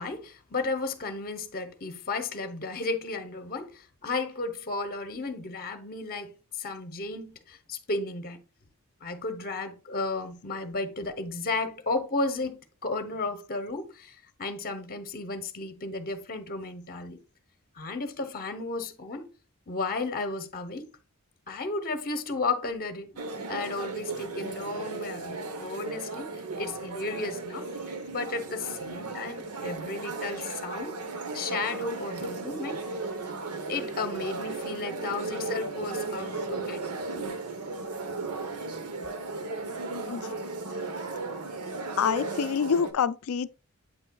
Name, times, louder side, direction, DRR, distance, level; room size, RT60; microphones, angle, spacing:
voice 1, 0.0-6.3 6.6-8.4 9.0-17.2 17.8-19.3 19.7-20.9 21.5-23.2 23.5-27.7 28.1-30.9 31.3-32.8 33.7-37.4, left 3 dB, 40° left, 0.9 m, -33 dB
sound 1, 23.2-42.9, right 3 dB, 85° right, 1.0 m, -35 dB
voice 2, 42.0-43.5, left 7 dB, 65° left, 0.4 m, -26 dB
8.3 x 5.6 x 2.3 m
head